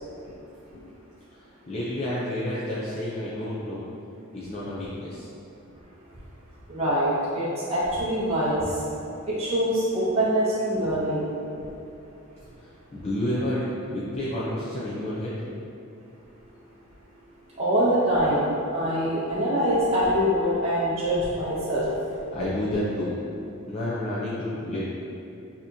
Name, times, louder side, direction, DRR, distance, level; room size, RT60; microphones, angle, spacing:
voice 1, 1.7-3.8 4.3-5.3 12.6-15.3 22.3-23.2 23.7-25.0, left 1 dB, 30° left, -9 dB, 0.5 m, -30 dB
voice 2, 6.7-8.6 9.4-11.2 17.6-21.9, equal, 30° right, -10 dB, 0.7 m, -24 dB
6.5 x 2.9 x 2.7 m, 2.9 s
head